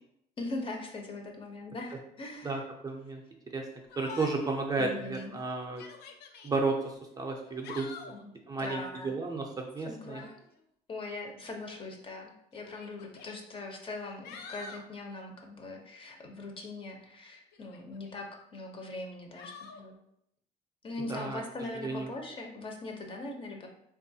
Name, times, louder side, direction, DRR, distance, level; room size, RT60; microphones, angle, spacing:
voice 1, 0.4-2.6 4.2-4.3 4.8-5.4 8.1-8.3 8.6-9.2 9.9-10.3 10.9-18.3 18.5-20.0 20.8-23.7, left 2 dB, 30° left, 2 dB, 0.6 m, -41 dB
voice 2, 2.4-3.2 3.5-3.6 4.0-5.8 6.4-7.9 8.5-10.2 21.1-21.4 21.8-22.1, right 3 dB, 20° right, 1 dB, 0.4 m, -33 dB
Yell, 3.9-4.6 5.0-5.1 5.6-6.5 7.4-8.2 10.0-10.4 11.6-11.7 12.5-13.4 13.9-14.9 17.5-18.2 19.4-19.8, left 5 dB, 75° left, 0.4 m, -47 dB
3.5 x 2.3 x 2.6 m, 0.75 s
cardioid pair, 110°, 17 cm